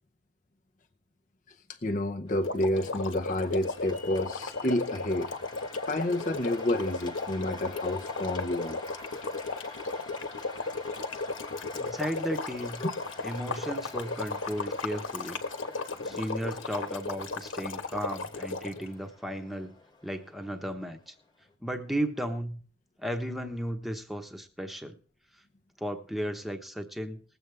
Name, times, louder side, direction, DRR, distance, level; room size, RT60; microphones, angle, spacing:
voice 1, 1.8-5.3 5.9-8.8 12.8-12.9 16.1-16.2, left 1 dB, 40° left, 4 dB, 0.7 m, -30 dB
Cheering / Applause, 2.3-21.5, left 3 dB, 20° left, 1.4 m, -47 dB
sound 1, 2.4-18.9, left 3 dB, 85° left, 1.4 m, -35 dB
voice 2, 11.7-12.8 13.2-15.4 16.0-19.8 20.0-21.1 21.6-22.6 23.0-25.0 25.8-27.2, equal, ahead, 6 dB, 1.0 m, -35 dB
20.5 x 8.0 x 3.4 m, 0.42 s
head